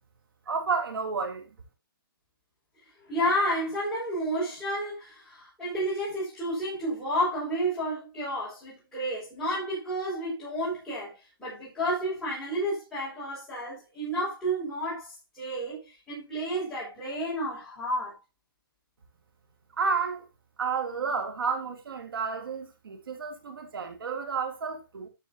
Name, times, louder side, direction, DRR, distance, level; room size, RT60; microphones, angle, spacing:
voice 1, 0.5-1.4 19.8-20.3 20.6-25.1, right 5 dB, 70° right, 3.3 m, -31 dB
voice 2, 3.1-18.2, equal, 5° left, 6.5 m, -31 dB
12.5 x 8.8 x 2.9 m
hypercardioid pair, 155°, 12 cm